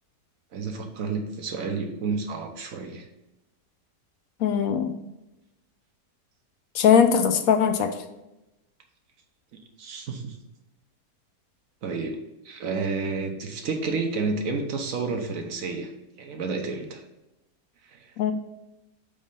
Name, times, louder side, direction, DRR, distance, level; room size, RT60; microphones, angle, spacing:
voice 1, 0.5-3.1 9.8-10.4 11.8-12.2 12.4-15.9 16.2-17.0 17.9-18.1, right 4 dB, 60° right, 4 dB, 1.3 m, -30 dB
voice 2, 4.4-4.9 6.7-7.9 18.2-18.3, left 7 dB, 65° left, 7 dB, 1.0 m, -20 dB
5.3 x 4.9 x 5.3 m, 0.97 s
omnidirectional pair, 1.8 m